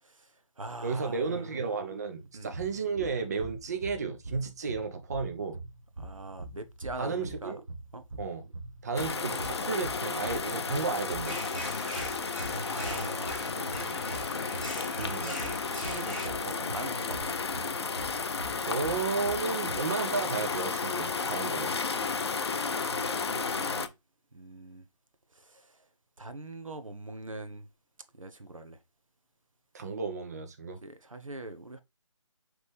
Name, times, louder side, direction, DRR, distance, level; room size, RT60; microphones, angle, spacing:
voice 1, 0.0-1.4 2.3-2.6 6.0-7.6 7.9-8.0 12.0-14.3 14.6-17.4 22.4-23.9 24.3-24.9 25.3-25.9 26.2-27.7 28.1-28.8 30.8-31.8, right 2 dB, 85° right, 0.8 m, -43 dB
voice 2, 0.8-5.6 7.0-7.6 8.2-8.4 8.8-11.4 15.0-15.3 18.6-21.8 29.7-30.8, right 4 dB, 30° right, 0.6 m, -33 dB
sound 1, 2.5-19.8, right 2 dB, 60° right, 1.2 m, -44 dB
sound 2, 9.0-23.9, left 5 dB, 55° left, 0.5 m, -33 dB
sound 3, 11.3-16.3, left 1 dB, ahead, 0.9 m, -42 dB
5.0 x 3.2 x 3.3 m
figure-of-eight pair, 155°, 17 cm